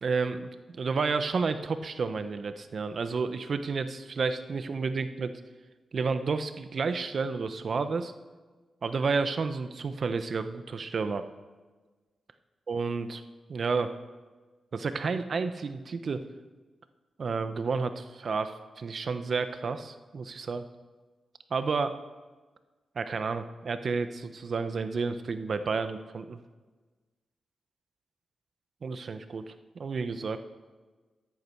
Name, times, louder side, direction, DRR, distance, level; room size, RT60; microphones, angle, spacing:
voice 1, 0.0-5.3 5.9-8.1 8.8-11.2 12.7-13.2 13.5-14.0 14.7-16.2 17.2-20.7 21.5-22.0 22.9-26.4 28.8-30.4, right 4 dB, 60° right, 10 dB, 1.0 m, -31 dB
14.0 x 11.0 x 4.7 m, 1.3 s
cardioid pair, 55°, 0 cm